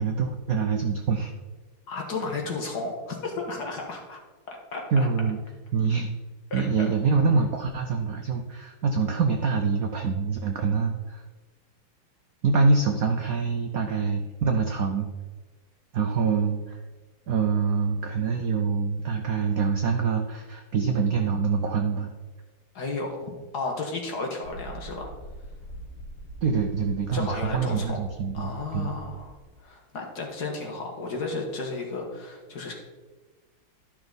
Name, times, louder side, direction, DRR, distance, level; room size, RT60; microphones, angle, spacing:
voice 1, 0.0-1.3 4.9-5.4 5.7-6.2 6.5-11.2 12.4-15.1 15.9-16.8 17.3-22.1 26.4-28.9, right 5 dB, 75° right, 4 dB, 0.8 m, -25 dB
voice 2, 1.9-4.2 4.7-5.1 6.5-6.9 22.8-25.1 27.1-28.0 28.3-29.3 29.6-32.7, left 3 dB, 50° left, 0 dB, 1.9 m, -33 dB
sound 1, 24.4-29.6, right 1 dB, 80° left, 2.4 m, -43 dB
12.5 x 5.9 x 3.9 m, 1.3 s
omnidirectional pair, 2.4 m